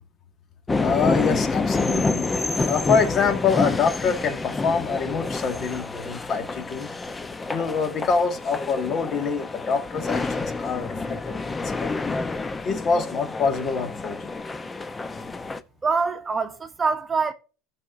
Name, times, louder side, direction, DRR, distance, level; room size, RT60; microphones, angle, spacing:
sound 1, 0.7-15.6, left 3 dB, 20° left, 0.8 m, -28 dB
voice 1, 0.8-2.3 2.7-6.9 7.5-12.2 12.6-14.3, left 5 dB, 45° left, 1.9 m, -25 dB
voice 2, 15.8-17.3, right 4 dB, 20° right, 1.0 m, -24 dB
16.0 x 6.0 x 2.6 m
hypercardioid pair, 85°, 0 cm